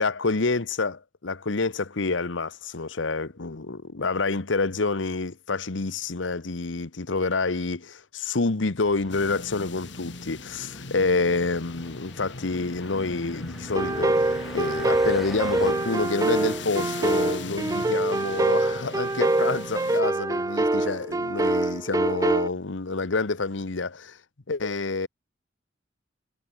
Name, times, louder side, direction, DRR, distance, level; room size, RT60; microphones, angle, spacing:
voice 1, 0.0-24.2 24.5-25.1, left 3 dB, 90° left, 1.1 m, -28 dB
sound 1, 8.8-15.7, equal, ahead, 4.8 m, -45 dB
sound 2, 9.1-20.0, left 3 dB, 75° left, 3.2 m, -39 dB
sound 3, 13.8-22.5, right 2 dB, 20° right, 0.5 m, -25 dB
head